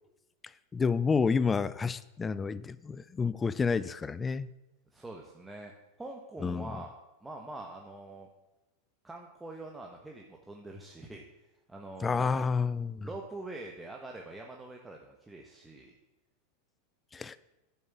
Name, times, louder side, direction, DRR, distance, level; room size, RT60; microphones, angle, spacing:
voice 1, 0.7-4.5 6.4-6.7 12.0-13.1 17.1-17.4, left 5 dB, 20° left, 17 dB, 0.5 m, -29 dB
voice 2, 4.9-5.7 6.0-8.3 9.0-11.2 11.7-12.3 13.0-15.9, right 2 dB, 10° right, 1 dB, 1.3 m, -44 dB
10.0 x 7.3 x 7.2 m, 1.0 s
hypercardioid pair, 100°, 0 cm